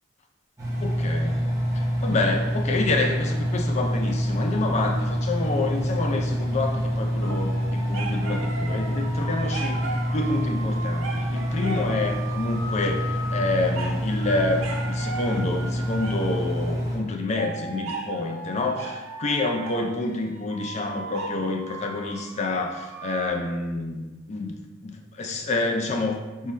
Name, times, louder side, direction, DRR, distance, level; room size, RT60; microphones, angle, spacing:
Engine, 0.6-17.0, equal, 15° right, 0.7 m, -27 dB
voice 1, 0.8-1.5 1.7-24.5 24.8-26.5, left 2 dB, 35° left, 3 dB, 0.4 m, -28 dB
sound 1, 7.2-16.5 17.4-23.3, right 2 dB, 75° right, 0.5 m, -37 dB
3.7 x 2.1 x 4.2 m, 1.1 s
head